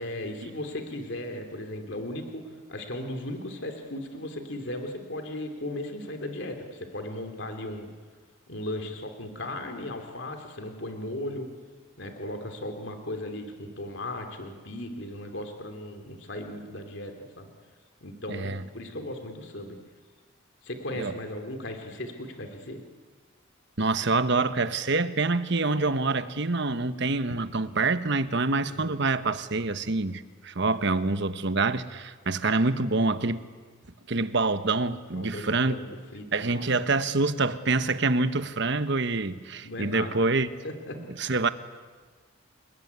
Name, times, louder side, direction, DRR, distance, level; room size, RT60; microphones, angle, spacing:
voice 1, 0.0-7.9 8.5-11.5 12.0-17.5 18.0-19.8 20.6-22.8 28.6-29.0 35.1-36.6 39.6-40.1 40.6-41.0, left 1 dB, 60° left, 3.0 m, -37 dB
voice 2, 18.3-18.6 21.0-21.1 23.8-33.4 34.1-35.8 36.3-40.5 41.2-41.5, right 3 dB, 55° right, 1.2 m, -26 dB
29.5 x 20.5 x 9.6 m
head